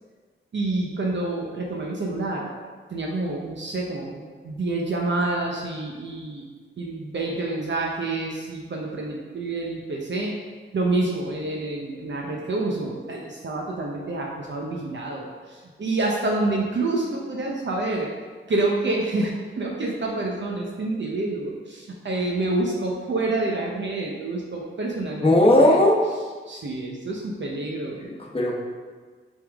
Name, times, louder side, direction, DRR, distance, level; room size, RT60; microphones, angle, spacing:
voice 1, 0.5-2.5 2.9-6.4 6.8-10.3 10.7-18.1 18.5-25.8 26.5-28.1, right 2 dB, 60° right, -2 dB, 0.9 m, -28 dB
voice 2, 25.2-26.0 28.0-28.5, left 1 dB, 25° left, -1 dB, 1.0 m, -17 dB
8.3 x 3.7 x 3.5 m, 1.5 s
wide cardioid pair, 125°, 21 cm